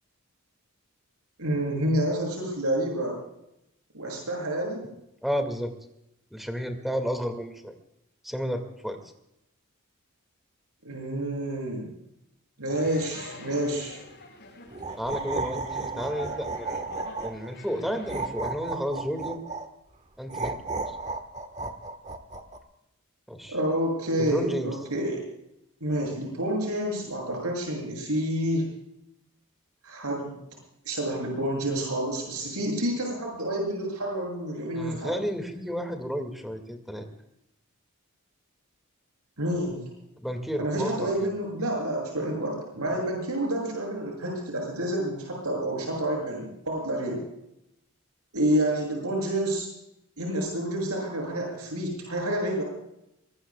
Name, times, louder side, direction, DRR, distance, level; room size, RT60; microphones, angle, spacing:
voice 1, 1.4-3.2 3.9-4.9 10.8-11.9 12.6-14.0 23.5-25.2 25.8-28.7 29.8-30.3 30.8-35.1 39.4-39.8 40.6-47.2 48.3-49.7 50.2-52.6, right 1 dB, 90° right, 0 dB, 7.6 m, -29 dB
voice 2, 5.2-5.7 6.3-7.7 8.2-9.0 15.0-16.8 17.2-19.4 20.2-20.6 20.9-21.0 23.3-23.6 24.2-24.7 34.8-37.1 40.2-41.3, equal, ahead, 5 dB, 2.1 m, -32 dB
sound 1, 12.7-18.3, left 2 dB, 50° left, 6.6 m, -45 dB
sound 2, 14.7-17.5 18.1-19.7 20.3-22.6, right 3 dB, 30° right, 1.4 m, -33 dB
24.0 x 20.5 x 2.4 m, 0.81 s
head